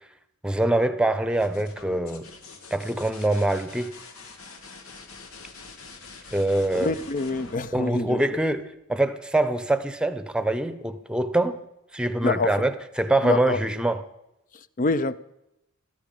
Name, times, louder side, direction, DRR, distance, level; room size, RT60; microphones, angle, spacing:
voice 1, 0.4-2.3 2.7-3.9 6.3-6.9 7.7-8.6 8.9-11.6 11.9-14.0, right 1 dB, 5° right, 0.8 m, -24 dB
sound 1, 1.2-8.8 10.6-11.1, left 4 dB, 85° left, 2.2 m, -45 dB
voice 2, 6.7-8.4 12.2-12.6 13.2-13.6 14.5-15.2, left 3 dB, 40° left, 0.6 m, -26 dB
17.0 x 13.5 x 5.4 m
head